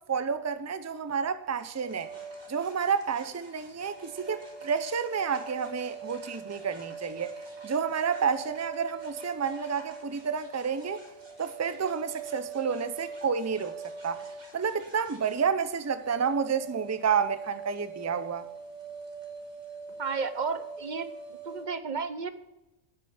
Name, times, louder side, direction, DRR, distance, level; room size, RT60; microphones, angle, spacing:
voice 1, 0.0-2.1 2.5-7.3 7.6-11.0 11.4-13.7 14.0-14.2 14.5-18.5, right 6 dB, 20° right, 0.5 m, -30 dB
sound 1, 1.8-21.6, right 4 dB, 80° right, 3.6 m, -43 dB
voice 2, 20.0-21.1 21.4-22.3, right 5 dB, 45° right, 0.9 m, -32 dB
9.3 x 9.1 x 8.6 m
omnidirectional pair, 1.1 m